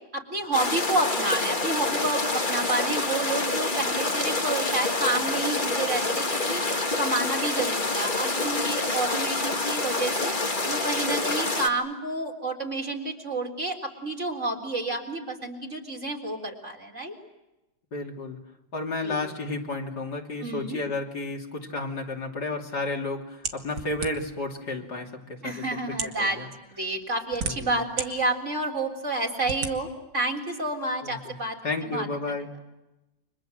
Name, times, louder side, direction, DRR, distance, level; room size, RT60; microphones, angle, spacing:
voice 1, 0.1-6.6 7.0-10.3 10.7-17.1 19.0-19.2 20.4-20.8 25.4-26.4 26.7-29.9 30.1-31.6 31.8-32.1, right 2 dB, 40° right, 1 dB, 4.2 m, -29 dB
sound 1, 0.5-11.7, left 2 dB, 25° left, 2.1 m, -27 dB
voice 2, 17.9-18.4 18.7-25.6 26.2-26.5 27.4-27.7 31.0-31.3 31.6-32.5, left 2 dB, 55° left, 1 dB, 3.5 m, -32 dB
sound 2, 23.4-24.4 25.2-25.3 25.9-26.2 27.0-28.1 28.6-28.7 29.4-29.7, right 5 dB, 80° right, 2.7 m, -32 dB
29.5 x 25.5 x 7.8 m, 0.96 s
omnidirectional pair, 2.1 m